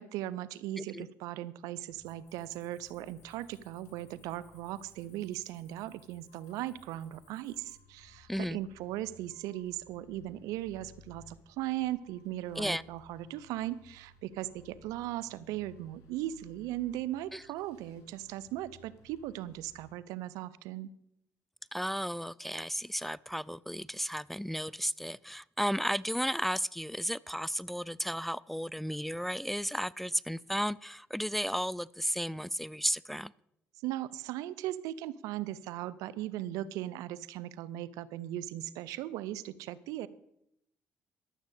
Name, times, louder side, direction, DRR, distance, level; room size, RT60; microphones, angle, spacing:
voice 1, 0.0-20.9 33.8-40.1, right 13 dB, 80° right, 17 dB, 0.7 m, -38 dB
voice 2, 0.8-1.1 8.3-8.6 12.6-12.8 17.3-17.4 21.7-33.3, equal, 5° left, 20 dB, 0.4 m, -34 dB
sound 1, 1.9-19.9, left 3 dB, 75° left, 2.4 m, -61 dB
Cricket, 2.0-7.7, left 4 dB, 55° left, 6.3 m, -66 dB
12.0 x 7.4 x 8.2 m, 0.77 s
supercardioid pair, 70°, 6 cm